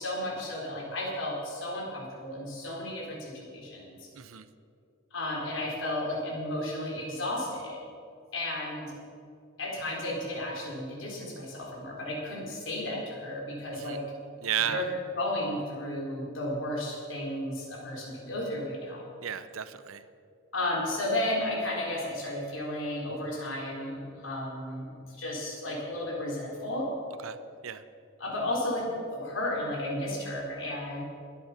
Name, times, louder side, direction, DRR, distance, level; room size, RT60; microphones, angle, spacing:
voice 1, 0.0-4.0 5.1-7.8 8.3-9.0 9.6-14.0 14.6-14.8 15.1-19.0 20.5-24.9 25.2-26.9 28.2-31.0, left 1 dB, 65° left, -2 dB, 4.1 m, -33 dB
voice 2, 4.1-4.5 13.7-14.0 14.4-14.9 19.2-20.0 27.2-27.4 27.6-27.8, right 9 dB, 90° right, 13 dB, 0.7 m, -33 dB
21.5 x 8.5 x 5.9 m, 2.4 s
head